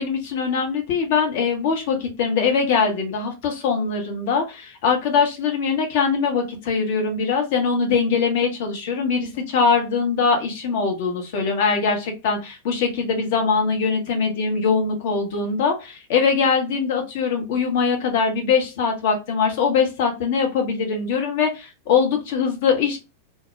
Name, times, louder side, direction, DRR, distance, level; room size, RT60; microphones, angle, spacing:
voice 1, 0.0-23.0, left 5 dB, 50° left, 3 dB, 0.7 m, -22 dB
2.2 x 2.0 x 2.7 m, 0.27 s
figure-of-eight pair, 90°, 0 cm